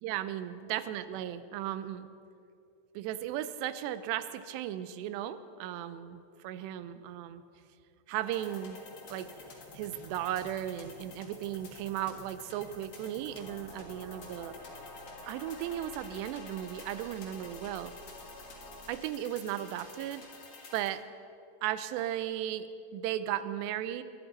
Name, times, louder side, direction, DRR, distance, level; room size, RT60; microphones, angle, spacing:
voice 1, 0.0-2.1 3.0-7.4 8.1-8.8 9.1-9.3 9.7-14.6 15.3-17.9 18.9-20.2 20.7-21.0 21.6-24.0, right 11 dB, 85° right, 12 dB, 2.8 m, -36 dB
sound 1, 8.2-20.9, left 3 dB, 55° left, 1.5 m, -50 dB
sound 2, 13.3-18.9, left 1 dB, 80° left, 5.1 m, -50 dB
23.0 x 11.5 x 4.0 m, 2.5 s
omnidirectional pair, 4.8 m